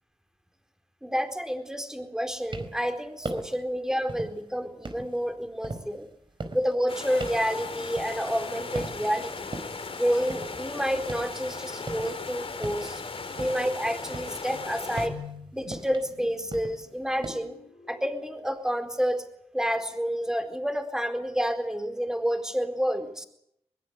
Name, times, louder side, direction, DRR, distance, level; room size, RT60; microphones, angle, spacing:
voice 1, 1.0-6.1 6.5-9.6 9.9-13.0 13.4-15.2 15.5-17.6 17.9-19.2 19.5-23.3, equal, 5° right, 6 dB, 4.2 m, -29 dB
sound 1, 2.3-2.9 3.2-3.7 4.1-4.5 4.8-8.5 8.7-9.2 9.5-11.4 11.7-13.7 14.1-17.3, right 2 dB, 50° right, 4.6 m, -39 dB
sound 2, 6.9-15.1, left 4 dB, 65° left, 4.3 m, -37 dB
sound 3, 13.7-19.0, left 6 dB, 85° left, 7.2 m, -49 dB
22.5 x 22.0 x 8.2 m, 0.75 s
wide cardioid pair, 80°, 11 cm